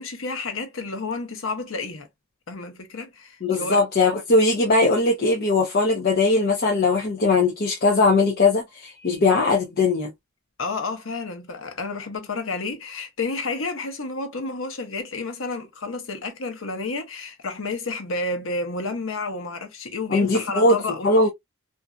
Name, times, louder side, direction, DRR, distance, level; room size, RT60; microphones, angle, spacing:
voice 1, 0.0-2.1 2.5-3.8 10.6-21.1, left 3 dB, 80° left, 0.9 m, -30 dB
voice 2, 3.4-10.1 20.1-20.8 21.0-21.3, left 3 dB, 50° left, 0.7 m, -20 dB
2.7 x 2.6 x 2.2 m
head